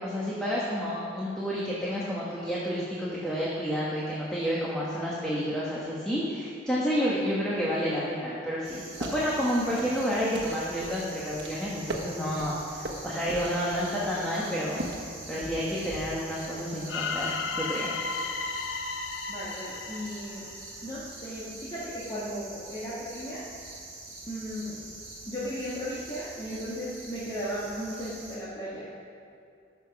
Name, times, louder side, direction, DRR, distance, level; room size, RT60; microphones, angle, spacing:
voice 1, 0.0-14.8 15.3-18.0, equal, 5° left, -7 dB, 1.3 m, -30 dB
sound 1, 8.6-28.4, right 2 dB, 40° right, 3.1 m, -44 dB
sound 2, 8.8-16.3, right 1 dB, 65° right, 1.2 m, -40 dB
sound 3, 16.9-20.9, left 4 dB, 75° left, 0.6 m, -34 dB
voice 2, 19.3-20.5 20.8-23.4 24.3-24.8 25.3-28.9, equal, 25° left, -10 dB, 1.7 m, -36 dB
13.5 x 6.0 x 5.9 m, 2.4 s
head